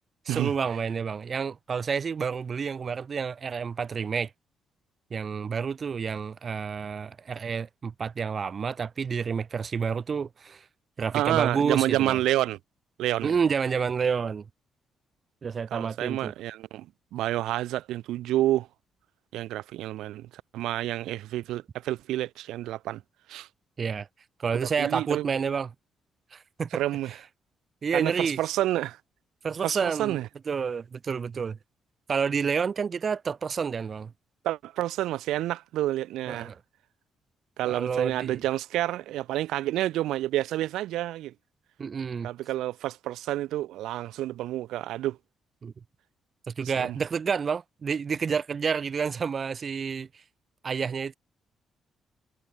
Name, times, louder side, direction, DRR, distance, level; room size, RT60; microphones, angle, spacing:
voice 1, 0.2-4.3 5.1-10.6 11.0-12.2 13.2-14.4 15.4-16.3 23.8-24.1 24.4-25.7 26.3-26.8 27.8-28.4 29.4-30.2 30.5-31.6 32.1-34.1 36.3-36.6 37.7-38.4 41.8-42.3 45.6-45.7 46.5-50.2 50.6-51.1, right 6 dB, 45° right, 3.2 m, -29 dB
voice 2, 11.1-12.6 13.0-13.3 15.7-18.7 19.3-23.0 23.3-23.5 24.6-25.3 26.7-27.1 27.9-29.0 29.6-30.3 34.4-36.5 37.6-41.3 42.2-45.2 46.8-47.0, right 14 dB, 85° right, 1.1 m, -29 dB
cardioid pair, 90°, 0 cm